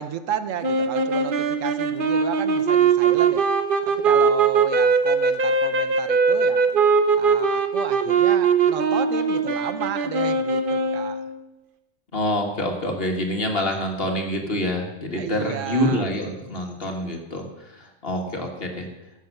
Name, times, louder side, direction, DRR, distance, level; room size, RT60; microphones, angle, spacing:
voice 1, 0.0-3.5 3.8-6.7 7.2-11.2 15.1-16.0, right 8 dB, 75° right, 12 dB, 1.1 m, -33 dB
sound 1, 0.6-11.4, right 5 dB, 45° right, 1.0 m, -21 dB
voice 2, 12.1-18.9, left 1 dB, 45° left, 2 dB, 1.9 m, -26 dB
15.0 x 6.6 x 6.5 m, 0.99 s
omnidirectional pair, 1.3 m